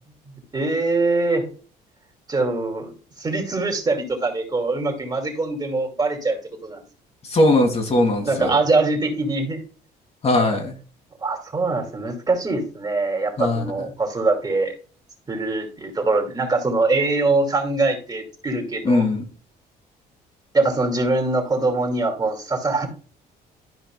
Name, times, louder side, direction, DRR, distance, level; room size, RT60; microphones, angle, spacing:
voice 1, 0.5-1.5 2.3-2.9 3.2-6.8 8.2-9.6 11.2-14.7 15.3-19.1 20.5-22.9, right 3 dB, 25° right, 3 dB, 2.4 m, -23 dB
voice 2, 7.3-8.5 10.2-10.7 13.4-13.6 18.9-19.2, left 2 dB, 35° left, 3 dB, 2.0 m, -19 dB
12.5 x 5.1 x 2.3 m, 0.39 s
cardioid pair, 110°, 17 cm